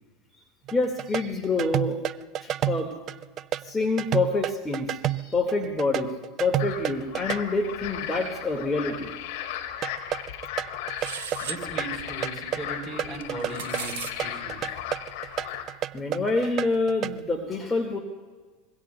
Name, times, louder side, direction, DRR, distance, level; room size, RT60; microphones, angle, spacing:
voice 1, 0.7-2.0 2.4-2.9 3.6-6.1 6.4-9.1 15.9-18.0, left 3 dB, 15° left, 2 dB, 1.8 m, -27 dB
sound 1, 0.7-7.4 9.8-17.2, right 11 dB, 40° right, 0.4 m, -31 dB
sound 2, 6.6-15.6, left 10 dB, 60° left, 1.9 m, -36 dB
sound 3, 11.0-11.6 13.2-14.1, right 10 dB, 65° right, 0.9 m, -36 dB
voice 2, 11.4-14.8, right 2 dB, 25° right, 1 dB, 3.5 m, -37 dB
26.0 x 22.0 x 2.3 m, 1.4 s
figure-of-eight pair, 80°, 0 cm